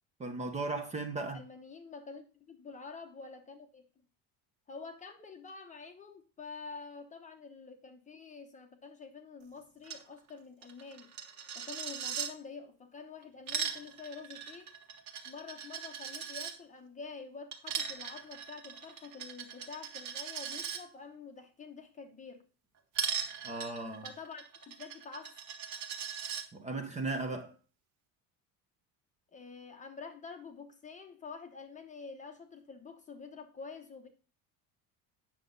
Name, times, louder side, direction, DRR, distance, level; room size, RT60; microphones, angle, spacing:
voice 1, 0.2-1.4 23.4-24.1 26.5-27.5, right 3 dB, 15° right, 0.9 m, -36 dB
voice 2, 1.2-3.8 4.7-11.1 11.5-14.7 15.2-22.4 24.0-25.4 29.3-34.1, left 4 dB, 20° left, 0.9 m, -47 dB
Coin (dropping), 9.8-10.0 10.3-10.4 10.6-12.3 13.2-16.5 17.5-20.8 22.9-26.4, right 7 dB, 45° right, 1.7 m, -39 dB
8.9 x 6.6 x 3.8 m
cardioid pair, 175°, 40 cm